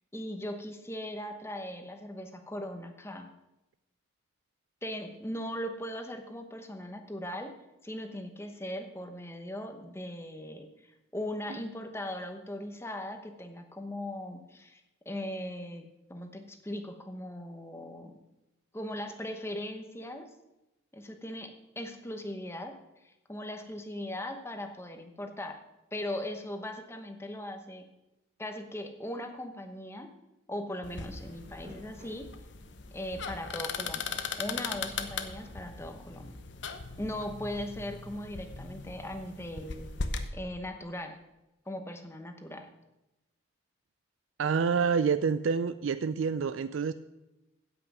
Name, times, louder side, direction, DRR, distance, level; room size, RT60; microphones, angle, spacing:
voice 1, 0.1-3.3 4.8-7.5 7.8-18.1 18.7-20.3 20.9-22.7 23.0-25.6 25.9-27.9 28.4-30.1 30.5-32.3 32.9-36.3 37.0-39.9 40.3-41.2 41.7-42.7, left 1 dB, 10° left, 6 dB, 0.9 m, -39 dB
sound 1, 30.8-40.3, left 4 dB, 65° left, 0.9 m, -39 dB
sound 2, 31.2-32.9 33.4-36.7, left 1 dB, 35° right, 4.1 m, -55 dB
voice 2, 44.4-46.9, right 6 dB, 75° right, 12 dB, 0.4 m, -27 dB
16.0 x 5.9 x 6.0 m, 0.97 s
head